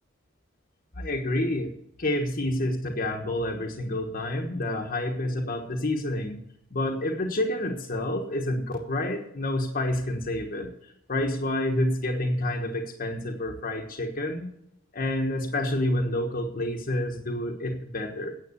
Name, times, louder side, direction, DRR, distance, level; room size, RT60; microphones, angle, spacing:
voice 1, 0.9-1.7 2.0-6.4 6.7-14.5 14.9-18.3, left 1 dB, 45° left, 1 dB, 1.3 m, -28 dB
9.7 x 7.7 x 8.3 m, 0.75 s
head